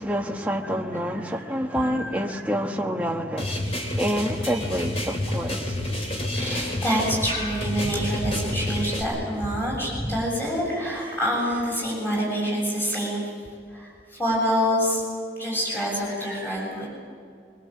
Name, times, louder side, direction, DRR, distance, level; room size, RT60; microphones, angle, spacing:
voice 1, 0.0-3.6 3.9-5.8, equal, 10° right, 1.3 m, -27 dB
voice 2, 1.8-2.4 6.4-13.2 13.7-15.0 15.4-16.9, equal, 10° left, 7.3 m, -26 dB
sound 1, 3.4-9.0, left 1 dB, 35° left, 3.8 m, -29 dB
24.5 x 24.0 x 7.8 m
head